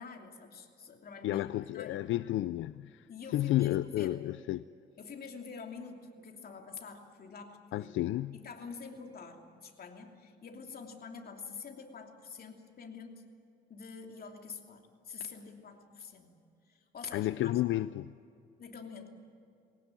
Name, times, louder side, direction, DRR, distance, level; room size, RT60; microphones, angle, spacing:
voice 1, 0.0-1.5 1.7-2.1 3.1-4.2 5.0-7.9 8.3-13.2 13.7-16.4 16.7-17.5 18.6-19.1, left 5 dB, 50° left, 2.9 m, -46 dB
voice 2, 1.2-4.6 7.7-8.4 17.1-18.1, left 15 dB, 80° left, 0.5 m, -32 dB
21.0 x 18.0 x 9.0 m
cardioid pair, 90°, 20 cm